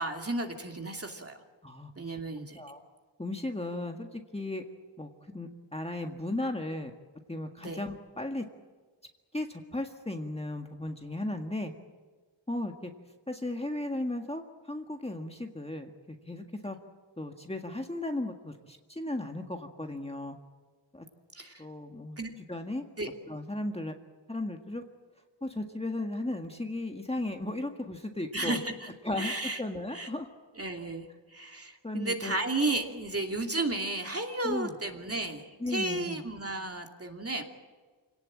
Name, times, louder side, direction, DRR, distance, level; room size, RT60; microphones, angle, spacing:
voice 1, 0.0-1.4 2.0-2.6 7.6-7.8 21.3-21.7 22.2-22.3 23.0-23.1 28.3-29.6 29.9-30.1 30.5-37.4, right 2 dB, 30° right, 3 dB, 2.7 m, -33 dB
voice 2, 3.2-4.6 5.0-6.9 7.3-8.4 9.3-11.7 12.5-12.9 13.3-14.4 14.7-15.9 16.3-16.8 17.2-20.4 20.9-21.1 21.6-22.2 22.5-22.8 23.3-23.9 24.3-24.8 25.4-28.6 29.0-29.3 29.6-30.3 31.8-32.4 34.4-34.7 35.6-36.2, left 1 dB, 15° left, 3 dB, 1.8 m, -35 dB
26.5 x 18.0 x 8.8 m, 1.4 s
wide cardioid pair, 85°, 47 cm